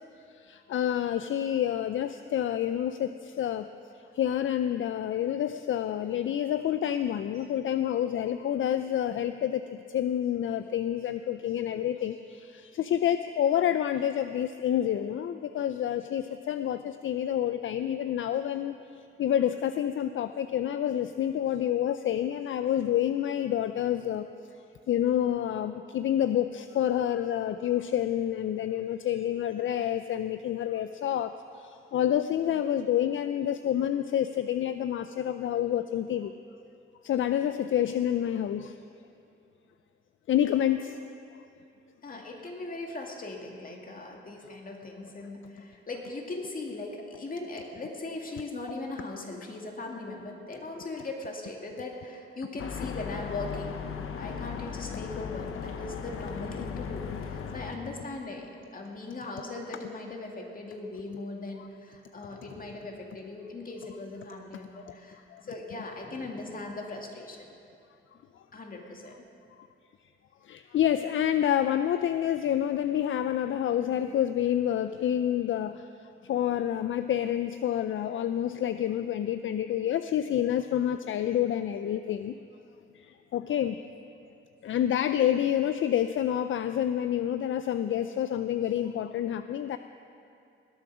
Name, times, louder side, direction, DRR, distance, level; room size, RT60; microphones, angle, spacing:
voice 1, 0.5-3.7 4.2-18.7 19.2-24.3 24.9-31.3 31.6-36.3 37.0-38.8 40.3-41.0 65.3-65.4 70.5-75.8 76.3-82.3 83.3-83.8 84.6-89.8, left 10 dB, 70° left, 10 dB, 0.4 m, -28 dB
voice 2, 42.0-53.8 54.2-67.6 68.5-69.2, left 2 dB, 40° left, 1 dB, 2.2 m, -39 dB
sound 1, 52.6-57.7, left 6 dB, 85° left, 1.0 m, -37 dB
20.0 x 8.6 x 6.1 m, 2.6 s
cardioid pair, 90°, 21 cm